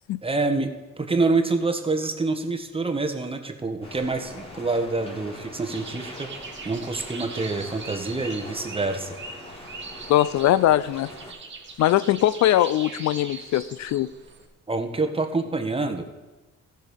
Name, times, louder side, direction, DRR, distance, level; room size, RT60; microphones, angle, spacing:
voice 1, 0.2-0.7 1.0-6.3 6.6-9.2 14.7-16.1, right 3 dB, 20° right, 5 dB, 1.4 m, -26 dB
sound 1, 3.8-11.3, left 1 dB, 20° left, 2.3 m, -42 dB
sound 2, 5.7-14.5, right 4 dB, 40° right, 2.0 m, -41 dB
voice 2, 10.1-11.1 11.8-14.1, left 13 dB, 65° left, 17 dB, 0.4 m, -21 dB
15.0 x 6.6 x 5.3 m, 1.2 s
cardioid pair, 90°, 30 cm